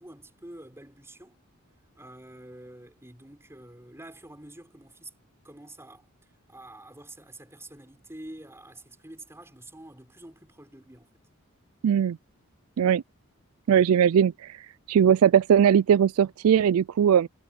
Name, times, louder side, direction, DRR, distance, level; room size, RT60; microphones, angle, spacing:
voice 1, 0.0-1.4 2.0-5.1 5.4-6.0 6.5-11.2, right 1 dB, 10° right, 5.9 m, -47 dB
voice 2, 11.8-12.2 12.8-13.0 13.7-14.6 14.9-17.3, right 8 dB, 75° right, 0.3 m, -20 dB
head